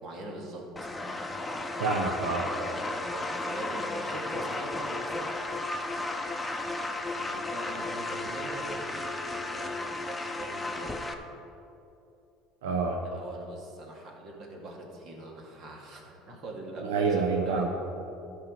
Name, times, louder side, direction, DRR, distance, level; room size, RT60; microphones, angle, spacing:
voice 1, 0.0-1.2 1.5-1.8 2.5-5.4 6.7-6.8 7.2-11.1 13.0-17.7, right 2 dB, 50° right, 0 dB, 2.2 m, -42 dB
sound 1, 0.8-11.1, left 2 dB, 10° left, 0.9 m, -34 dB
voice 2, 1.8-2.5 12.6-13.0 16.8-17.7, right 4 dB, 85° right, 1 dB, 0.8 m, -27 dB
12.0 x 4.8 x 6.4 m, 2.7 s
supercardioid pair, 90°, 0 cm